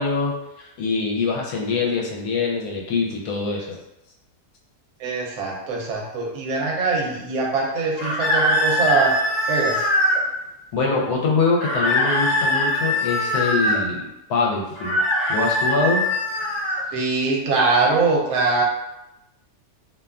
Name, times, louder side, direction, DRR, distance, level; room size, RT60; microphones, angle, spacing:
voice 1, 0.0-3.7 10.7-14.0 14.3-15.0 15.3-16.0, left 4 dB, 80° left, -1 dB, 1.1 m, -24 dB
voice 2, 5.0-9.1 9.5-9.9 16.9-18.6, right 3 dB, 75° right, -2 dB, 1.1 m, -22 dB
sound 1, 8.0-10.2 11.6-13.8 14.7-16.8, left 1 dB, 60° left, 1.2 m, -22 dB
2.7 x 2.2 x 2.3 m, 0.88 s
omnidirectional pair, 1.7 m